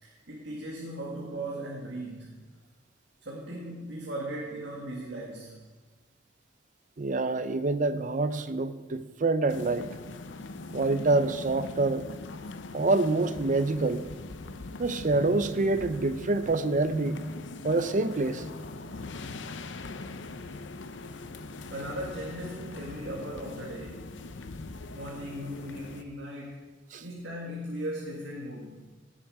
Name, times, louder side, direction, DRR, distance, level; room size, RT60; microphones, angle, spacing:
voice 1, 0.0-2.4 3.2-5.6 21.7-24.1 24.9-26.7 27.0-28.9, right 1 dB, 65° right, 1.9 m, -38 dB
voice 2, 7.0-9.9 10.7-12.1 12.7-14.1 14.8-17.2 17.6-18.4 26.9-27.0, right 3 dB, 45° right, 0.6 m, -26 dB
sound 1, 9.5-26.0, left 3 dB, 85° left, 0.7 m, -41 dB
17.0 x 7.5 x 4.9 m
head